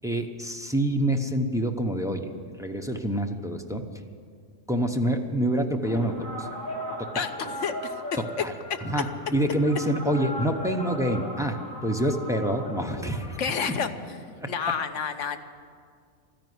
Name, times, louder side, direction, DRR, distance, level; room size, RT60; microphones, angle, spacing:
voice 1, 0.0-2.3 2.6-3.8 4.7-6.5 7.0-7.2 8.4-8.5 8.8-13.4 14.4-14.5, right 1 dB, 5° right, 4 dB, 0.7 m, -27 dB
sound 1, 5.8-14.4, equal, 85° left, 3.0 m, -38 dB
voice 2, 7.6-8.4 13.4-15.4, left 6 dB, 70° left, 8 dB, 1.2 m, -30 dB
13.5 x 10.5 x 9.5 m, 2.1 s
omnidirectional pair, 1.4 m